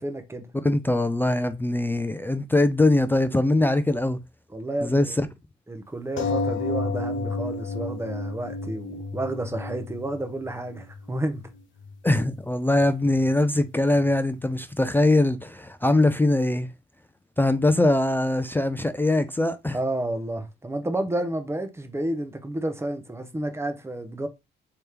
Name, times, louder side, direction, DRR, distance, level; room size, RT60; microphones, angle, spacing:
voice 1, 0.0-0.5 4.5-5.2 5.7-11.5 19.7-24.3, right 1 dB, 15° right, 0.8 m, -31 dB
voice 2, 0.6-4.2 4.8-5.3 12.0-16.7 17.4-19.8, left 2 dB, 10° left, 0.3 m, -22 dB
sound 1, 6.2-11.2 11.9-12.0 12.3-12.4, left 3 dB, 75° left, 0.9 m, -31 dB
3.4 x 2.9 x 3.3 m
cardioid pair, 90°, 20 cm